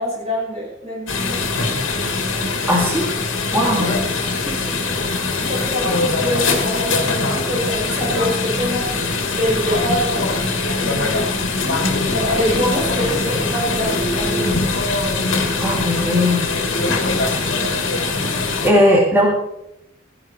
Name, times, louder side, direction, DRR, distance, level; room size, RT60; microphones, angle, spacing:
voice 1, 0.0-1.5 3.8-3.9 4.4-5.0 5.4-8.9 9.3-10.3 10.7-14.6 16.8-17.0, equal, 35° right, -4 dB, 5.7 m, -25 dB
sound 1, 1.1-18.7, left 3 dB, 85° left, 2.4 m, -22 dB
voice 2, 2.7-3.1 3.5-3.9 15.6-16.4 18.6-19.3, left 1 dB, 10° right, -3 dB, 2.9 m, -17 dB
15.0 x 11.0 x 4.6 m, 0.82 s
head